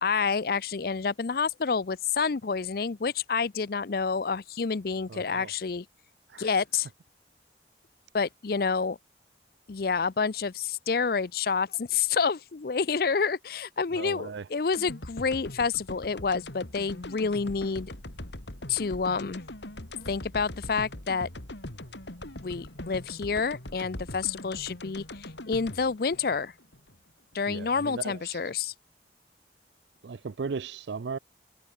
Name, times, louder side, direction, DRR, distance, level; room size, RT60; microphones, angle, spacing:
voice 1, 0.0-5.9 6.4-6.9 8.1-9.0 9.7-17.9 18.7-19.4 20.0-21.3 22.4-26.5 27.3-28.7, left 5 dB, 55° left, 0.5 m, -28 dB
voice 2, 5.1-5.5 6.3-6.5 13.9-14.5 27.5-28.4 30.0-31.2, right 5 dB, 75° right, 0.5 m, -37 dB
sound 1, 14.7-27.0 27.3-27.4, left 1 dB, 80° left, 3.9 m, -41 dB
head